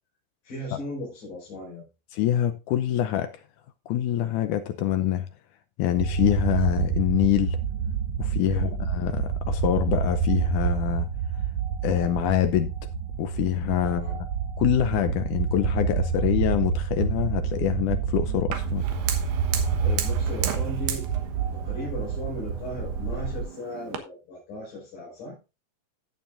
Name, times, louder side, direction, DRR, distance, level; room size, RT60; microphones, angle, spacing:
voice 1, 0.4-1.9 8.5-8.8 13.8-14.2 19.8-21.1 21.5-25.4, left 1 dB, 55° left, 6.4 m, -37 dB
voice 2, 2.1-3.3 3.9-5.3 5.8-7.6 8.2-11.1 11.8-12.7 13.2-14.0 14.6-18.8, left 12 dB, 80° left, 1.8 m, -25 dB
sound 1, 6.0-23.4, right 6 dB, 55° right, 3.2 m, -28 dB
Fire, 18.5-24.0, right 9 dB, 85° right, 3.3 m, -36 dB
16.5 x 7.0 x 2.5 m
omnidirectional pair, 4.4 m